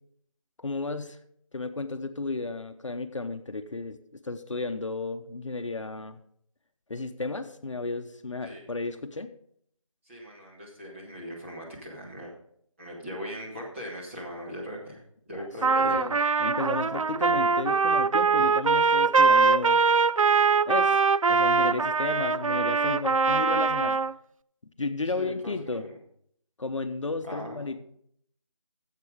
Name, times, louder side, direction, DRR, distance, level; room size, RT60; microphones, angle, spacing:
voice 1, 0.6-1.2 1.5-4.0 4.2-6.2 6.9-9.3 15.3-15.5 15.8-19.8 20.7-21.0 21.3-24.0 24.8-25.8 26.6-27.8, left 3 dB, 65° left, 8 dB, 0.9 m, -33 dB
voice 2, 10.1-12.3 12.8-15.0 15.3-16.0 25.0-25.9 27.2-27.7, equal, 20° right, -4 dB, 2.3 m, -39 dB
Trumpet, 15.6-24.1, right 5 dB, 75° right, 0.4 m, -22 dB
10.5 x 7.6 x 5.1 m, 0.68 s
figure-of-eight pair, 170°, 17 cm